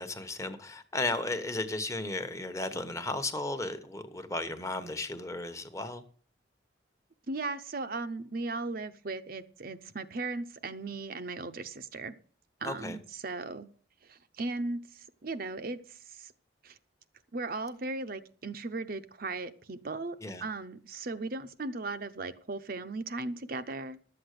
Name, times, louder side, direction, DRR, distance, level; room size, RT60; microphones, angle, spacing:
voice 1, 0.0-6.0 12.6-13.0 20.2-20.4, left 2 dB, 15° left, 1.0 m, -35 dB
voice 2, 7.3-12.1 12.6-13.7 14.0-16.3 16.6-16.8 17.3-24.0, right 3 dB, 50° right, 0.8 m, -37 dB
12.0 x 7.9 x 6.6 m
head